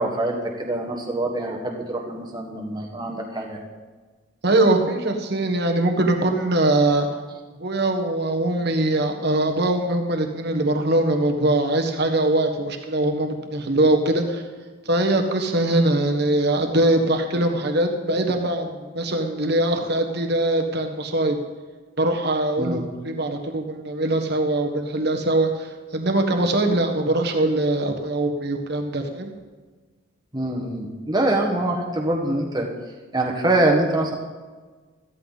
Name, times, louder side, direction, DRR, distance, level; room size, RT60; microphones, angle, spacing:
voice 1, 0.0-3.6 22.6-22.8 30.3-32.7 33.1-34.1, right 1 dB, 20° right, 1 dB, 1.5 m, -24 dB
voice 2, 4.4-7.1 7.5-14.4 14.8-21.4 22.0-29.3, right 1 dB, 50° right, 4 dB, 1.4 m, -22 dB
14.0 x 13.5 x 4.1 m, 1.4 s
head